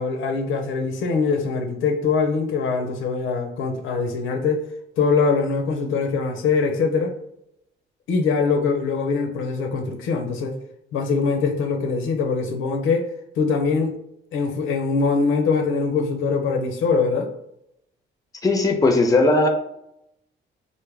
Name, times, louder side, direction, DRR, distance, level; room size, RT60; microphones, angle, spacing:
voice 1, 0.0-4.6 5.0-7.1 8.1-10.5 10.9-13.1 13.4-14.0 14.3-17.3, left 4 dB, 85° left, 4 dB, 0.6 m, -22 dB
voice 2, 18.4-19.5, left 2 dB, 15° left, 4 dB, 0.5 m, -17 dB
3.4 x 2.1 x 3.3 m, 0.79 s
cardioid pair, 90°, 20 cm